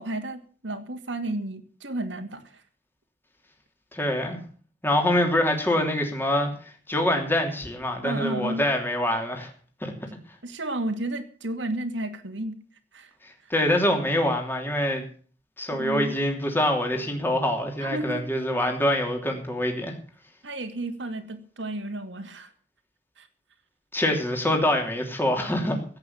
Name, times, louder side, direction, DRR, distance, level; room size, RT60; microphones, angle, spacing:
voice 1, 0.0-2.6 8.0-8.7 10.4-12.6 12.9-13.1 15.7-16.1 17.8-18.3 20.4-22.5 23.2-23.3, right 1 dB, 85° right, 8 dB, 2.4 m, -32 dB
voice 2, 3.9-4.4 4.8-6.5 6.9-9.5 9.8-9.9 13.2-15.0 15.6-19.9 23.9-25.8, left 1 dB, 10° left, 2 dB, 3.0 m, -25 dB
16.5 x 8.9 x 7.2 m, 0.43 s
head